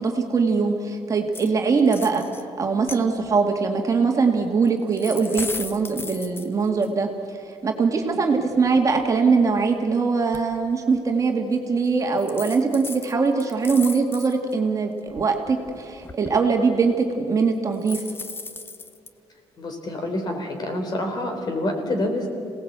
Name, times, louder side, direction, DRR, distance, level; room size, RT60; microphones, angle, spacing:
voice 1, 0.0-2.3 2.6-7.1 7.6-18.0, right 4 dB, 30° right, 2 dB, 2.1 m, -22 dB
sound 1, 1.3-1.5 1.8-2.4 2.8-3.4 4.7-6.9 8.0-8.1 8.5-9.8 10.3-10.4 10.9-11.1 11.9-12.0 12.2-14.5 15.0-16.4 17.7-19.1, left 3 dB, 20° left, 1.0 m, -36 dB
voice 2, 19.6-22.3, left 1 dB, 40° left, 4 dB, 3.6 m, -27 dB
27.0 x 18.5 x 8.1 m, 2.5 s
cardioid pair, 140°, 10 cm